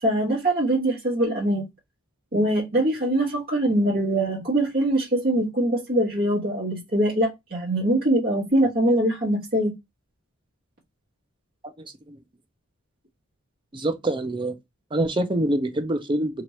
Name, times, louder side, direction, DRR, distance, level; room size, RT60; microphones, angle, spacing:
voice 1, 0.0-1.7 2.3-9.7, right 1 dB, 45° right, 1.2 m, -23 dB
voice 2, 11.6-12.2 13.7-14.6 14.9-16.4, right 1 dB, 25° right, 0.5 m, -26 dB
2.9 x 2.5 x 3.0 m
head